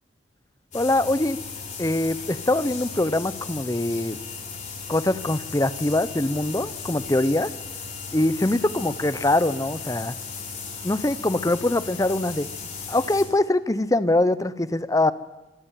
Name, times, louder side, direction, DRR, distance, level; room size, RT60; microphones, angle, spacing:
sound 1, 0.7-13.3, left 5 dB, 40° left, 4.8 m, -36 dB
voice 1, 0.7-1.4 1.8-4.2 4.9-7.5 8.1-10.1 10.8-12.5 12.9-15.1, left 2 dB, 20° left, 15 dB, 0.8 m, -23 dB
24.5 x 14.0 x 9.1 m, 1.1 s
head